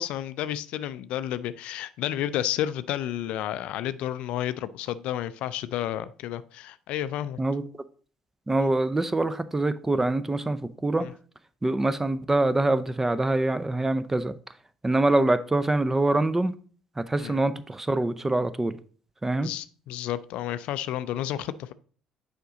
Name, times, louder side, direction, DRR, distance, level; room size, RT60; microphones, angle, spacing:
voice 1, 0.0-7.4 8.6-8.7 11.0-11.1 17.2-17.4 19.4-21.7, left 12 dB, 65° left, 15 dB, 0.3 m, -31 dB
voice 2, 7.4-7.8 8.5-11.1 11.6-14.3 14.8-16.5 17.0-18.8 19.2-19.5, right 2 dB, 15° right, 14 dB, 0.5 m, -25 dB
6.7 x 5.0 x 3.9 m, 0.43 s
hypercardioid pair, 55°, 2 cm